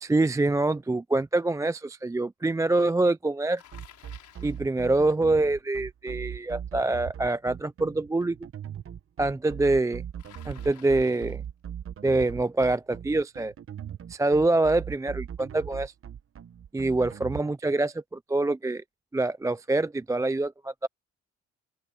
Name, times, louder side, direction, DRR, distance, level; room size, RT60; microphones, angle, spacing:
voice 1, 0.0-3.6 4.4-8.4 9.2-10.0 10.5-11.4 12.0-13.5 14.1-15.9 16.7-18.8 19.1-20.9, right 2 dB, 10° right, 0.4 m, -25 dB
Bicycle, 3.6-4.7 10.2-11.5, left 11 dB, 75° left, 6.0 m, -53 dB
sound 1, 3.7-17.4, right 9 dB, 45° right, 1.1 m, -39 dB
open air
cardioid pair, 90°, 30 cm